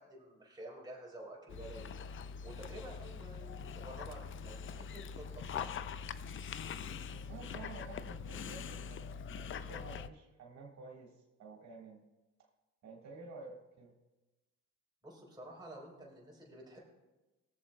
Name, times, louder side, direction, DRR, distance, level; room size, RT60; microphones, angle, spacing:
voice 1, 0.0-1.9 2.4-5.9 15.0-16.8, right 1 dB, 15° right, -3 dB, 3.7 m, -50 dB
Dog, 1.5-10.1, left 6 dB, 40° left, 0.4 m, -43 dB
voice 2, 7.1-12.0 12.8-13.9, right 3 dB, 65° right, -1 dB, 1.7 m, -51 dB
21.5 x 7.5 x 2.2 m, 1.1 s
cardioid pair, 90°, 30 cm